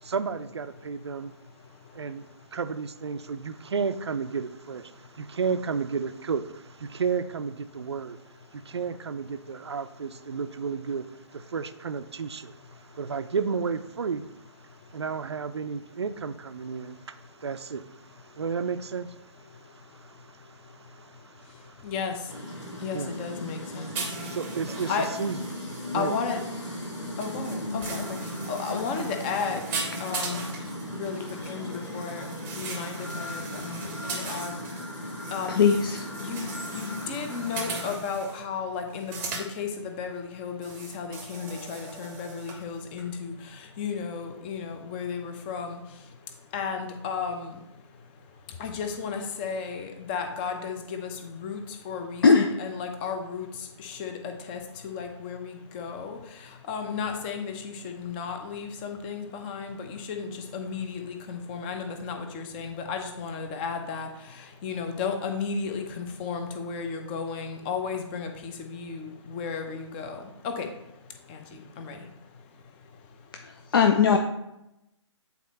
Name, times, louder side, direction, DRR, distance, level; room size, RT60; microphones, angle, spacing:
voice 1, 0.0-1.3 1.9-8.2 8.5-14.3 14.9-21.9 22.6-23.1 23.5-26.2 26.8-27.1, right 5 dB, 60° right, 11 dB, 0.5 m, -33 dB
voice 2, 21.8-22.1 22.8-23.9 24.9-25.1 25.9-26.4 27.2-28.2 28.5-29.6 30.0-30.5 30.9-31.2 31.5-32.3 32.6-33.8 34.1-34.5 35.3-35.8 36.2-43.3 43.8-45.8 46.5-47.5 48.6-51.6 51.8-53.5 53.8-56.2 56.7-64.1 64.6-70.7 71.3-71.4 71.8-72.0, left 5 dB, 20° left, 4 dB, 0.7 m, -33 dB
sound 1, 22.3-37.9, left 1 dB, 75° left, 1.9 m, -37 dB
sound 2, 23.9-38.4 38.9-39.5 40.6-42.6 43.0-43.1, right 4 dB, 15° right, 0.9 m, -39 dB
voice 3, 35.5-36.1 36.7-36.9 52.2-52.5 73.3-74.2, left 6 dB, 50° left, 4 dB, 0.5 m, -21 dB
8.3 x 4.2 x 4.1 m, 0.89 s
figure-of-eight pair, 140°, 16 cm